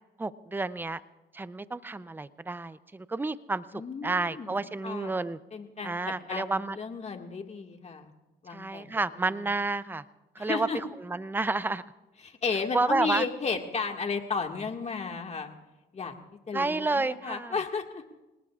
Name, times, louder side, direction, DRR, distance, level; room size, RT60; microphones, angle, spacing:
voice 1, 0.2-1.0 1.3-3.6 4.0-5.4 5.8-6.8 8.5-10.0 10.4-10.7 11.0-11.8 12.7-13.2 16.5-17.6, right 3 dB, 10° right, 15 dB, 0.6 m, -30 dB
voice 2, 3.7-4.6 4.8-5.2 5.5-8.1 8.4-8.9 9.2-9.4 10.4-10.8 12.2-15.5 15.9-16.2 16.5-18.0, left 5 dB, 35° left, 3 dB, 2.0 m, -34 dB
27.5 x 19.0 x 2.5 m, 1.0 s
cardioid pair, 85°, 19 cm